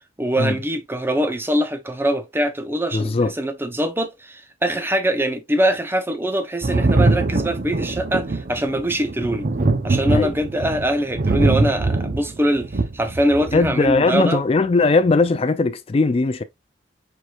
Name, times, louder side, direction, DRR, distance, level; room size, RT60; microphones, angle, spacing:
voice 1, 0.2-9.5 9.8-14.4, right 1 dB, 15° right, 0.7 m, -23 dB
voice 2, 2.9-3.3 10.1-10.3 13.5-16.4, left 3 dB, 35° left, 0.4 m, -19 dB
Thunder, 6.6-14.0 15.1-15.2, right 2 dB, 50° right, 0.7 m, -22 dB
4.7 x 4.5 x 2.4 m
head